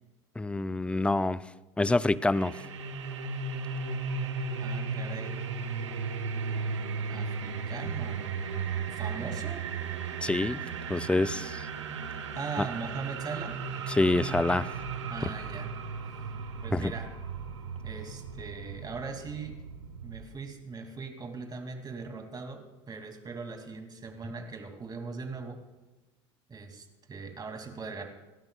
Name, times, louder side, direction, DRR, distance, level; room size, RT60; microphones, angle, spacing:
voice 1, 0.4-1.4 1.8-2.5 10.2-10.6 10.9-11.6 12.6-12.7 13.9-14.7 16.7-16.9, left 2 dB, 5° left, 17 dB, 0.5 m, -26 dB
sound 1, 2.3-20.2, right 5 dB, 90° right, 1.4 m, -35 dB
voice 2, 4.6-5.4 7.1-8.2 8.9-9.7 12.3-13.6 15.1-15.7 16.6-17.1 17.8-19.6 20.0-25.6 26.5-28.1, right 4 dB, 25° right, 4 dB, 2.9 m, -40 dB
29.0 x 12.5 x 2.5 m, 1.1 s
hypercardioid pair, 80°, 15 cm